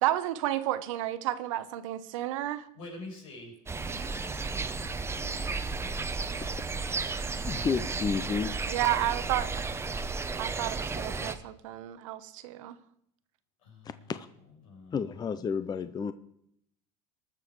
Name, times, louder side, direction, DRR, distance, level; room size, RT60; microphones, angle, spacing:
voice 1, 0.0-2.7 8.7-9.6 10.4-12.8, right 14 dB, 85° right, 0.9 m, -31 dB
voice 2, 2.7-6.6 6.8-7.6 13.6-14.1 14.6-15.4, left 2 dB, 85° left, 6.2 m, -49 dB
sound 1, 3.7-11.3, right 4 dB, 15° right, 0.8 m, -33 dB
voice 3, 7.5-8.5 14.1-14.3 14.9-16.1, left 6 dB, 25° left, 0.6 m, -31 dB
19.5 x 6.9 x 4.7 m
supercardioid pair, 105°, 16 cm